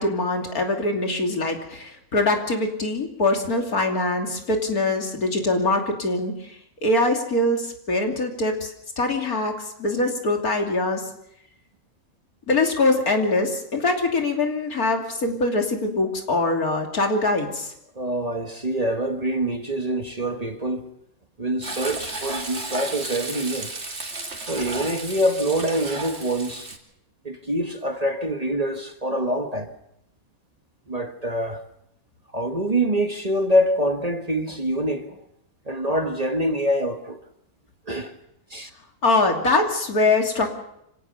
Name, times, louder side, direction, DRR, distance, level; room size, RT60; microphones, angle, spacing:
voice 1, 0.0-11.0 12.5-17.7 39.0-40.5, left 2 dB, 80° left, 3.4 m, -23 dB
voice 2, 17.9-20.9 21.4-23.7 24.5-26.7 27.2-29.7 30.9-31.6 32.3-35.2 35.6-37.2 37.9-38.1 38.5-38.7, right 1 dB, 25° right, 1.5 m, -25 dB
Frying (food), 21.6-26.8, right 2 dB, 45° right, 2.8 m, -33 dB
25.5 x 17.5 x 6.8 m
omnidirectional pair, 1.5 m